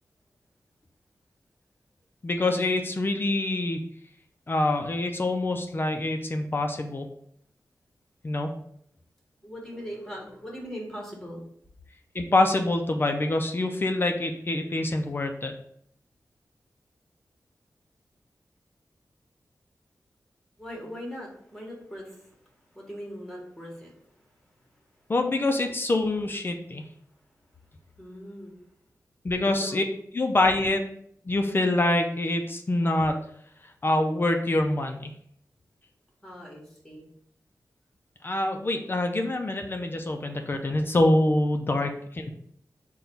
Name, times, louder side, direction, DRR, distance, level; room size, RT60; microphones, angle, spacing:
voice 1, 2.2-3.8 4.5-7.1 8.2-8.5 12.1-15.5 25.1-26.8 29.2-29.8 30.1-30.8 31.2-33.2 33.8-35.1 38.2-42.3, left 2 dB, 35° left, 4 dB, 0.4 m, -25 dB
voice 2, 9.4-11.4 20.6-24.1 28.0-28.5 29.6-29.8 36.2-37.1, equal, 5° left, -2 dB, 1.1 m, -40 dB
3.9 x 2.2 x 4.4 m, 0.67 s
wide cardioid pair, 110°, 6 cm